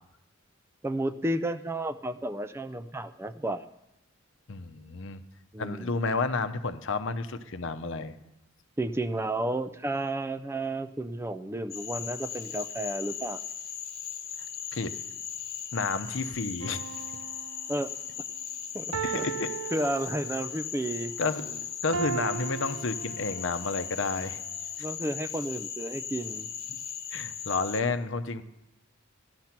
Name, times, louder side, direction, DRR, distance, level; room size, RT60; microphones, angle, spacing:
voice 1, 0.8-3.7 5.5-5.9 8.8-13.4 17.7-17.9 18.7-19.3 19.7-21.1 24.8-26.5, right 1 dB, 10° right, 12 dB, 0.4 m, -32 dB
voice 2, 4.5-5.2 5.6-8.1 14.7-14.9 15.7-16.8 19.0-19.5 21.2-24.4 27.1-28.4, left 3 dB, 65° left, 10 dB, 0.8 m, -31 dB
Cricket / Frog, 11.7-27.8, left 8 dB, 45° left, 1.2 m, -38 dB
sound 1, 16.6-17.9 18.9-20.6 21.9-23.6 24.3-24.4, right 7 dB, 70° right, 0.6 m, -37 dB
15.0 x 10.5 x 5.9 m, 0.91 s
head